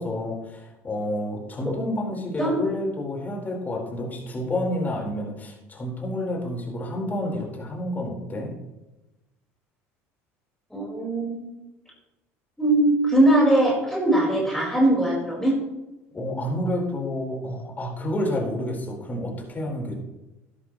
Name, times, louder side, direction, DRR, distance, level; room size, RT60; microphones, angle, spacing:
voice 1, 0.0-8.5 16.1-19.9, left 1 dB, 25° left, -1 dB, 4.5 m, -29 dB
voice 2, 10.7-11.4 12.6-15.5, right 1 dB, 5° left, -3 dB, 4.9 m, -21 dB
12.5 x 12.0 x 3.2 m, 1.0 s
supercardioid pair, 90°, 7 cm